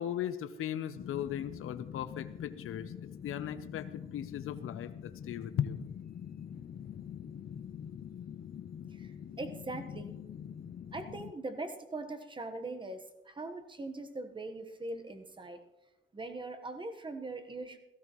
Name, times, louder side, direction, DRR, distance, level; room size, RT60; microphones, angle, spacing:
voice 1, 0.0-2.9 3.2-5.8, left 10 dB, 85° left, 11 dB, 0.8 m, -37 dB
sound 1, 0.9-11.3, left 8 dB, 45° left, 0.5 m, -45 dB
voice 2, 8.9-10.1 10.9-15.6 16.1-17.8, right 2 dB, 25° right, 6 dB, 1.2 m, -41 dB
17.5 x 15.0 x 3.1 m, 1.0 s
cardioid pair, 120°, 21 cm